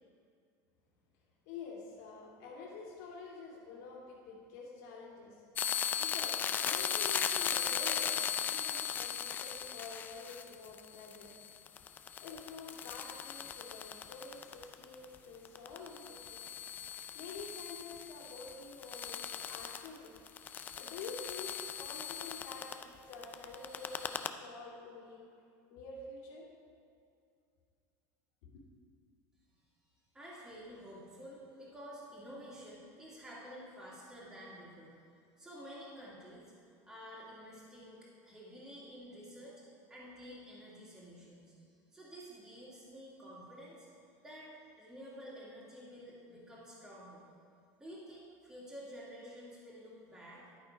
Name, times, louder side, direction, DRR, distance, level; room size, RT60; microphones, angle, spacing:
voice 1, 1.5-5.4 6.0-11.3 12.2-16.4 17.1-20.1 20.8-25.3 25.7-26.5 28.4-28.5, left 4 dB, 75° left, -4 dB, 2.2 m, -48 dB
sound 1, 5.6-15.2 15.4-22.8 23.1-24.3, left 9 dB, 20° left, 0.4 m, -38 dB
voice 2, 30.1-35.0 35.4-43.9 44.2-44.5 44.7-47.2 47.8-50.6, equal, 5° right, -8 dB, 2.1 m, -50 dB
11.5 x 6.2 x 5.1 m, 2.4 s
cardioid pair, 165°, 8 cm